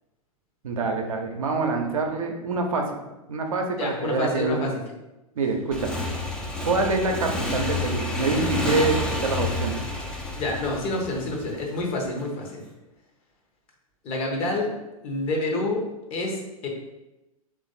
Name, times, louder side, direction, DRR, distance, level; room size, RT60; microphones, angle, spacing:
voice 1, 0.6-2.9 3.3-4.6 5.4-6.0 6.7-9.8, right 3 dB, 70° right, 3 dB, 0.6 m, -26 dB
voice 2, 3.8-4.8 10.4-12.6 14.0-14.7 15.0-15.8 16.1-16.7, left 2 dB, 35° left, 0 dB, 0.9 m, -28 dB
Motorcycle / Engine, 5.7-12.1, left 2 dB, 5° left, 0.4 m, -29 dB
3.2 x 2.5 x 3.9 m, 0.98 s
figure-of-eight pair, 100°, 18 cm